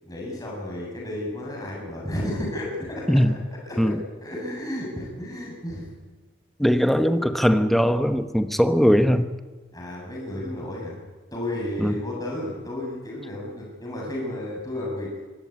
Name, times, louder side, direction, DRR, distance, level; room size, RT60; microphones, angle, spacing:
voice 1, 0.0-3.2 3.7-3.9 4.2-5.9 6.6-6.9 9.7-11.0 11.3-15.2, left 1 dB, 20° left, -3 dB, 7.8 m, -32 dB
voice 2, 6.6-9.3 11.8-12.0, equal, ahead, 8 dB, 1.0 m, -20 dB
24.5 x 17.0 x 9.7 m, 1.3 s
head